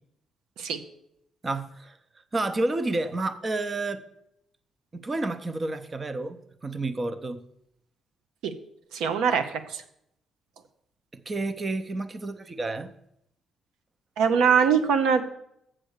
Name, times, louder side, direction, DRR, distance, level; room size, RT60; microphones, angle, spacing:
voice 1, 1.4-2.0 2.3-4.0 4.9-7.4 11.1-12.9, right 2 dB, 30° right, 0.7 m, -30 dB
voice 2, 8.9-9.8 14.2-15.2, right 6 dB, 90° right, 0.7 m, -22 dB
7.6 x 6.4 x 6.5 m
cardioid pair, 90°, 0 cm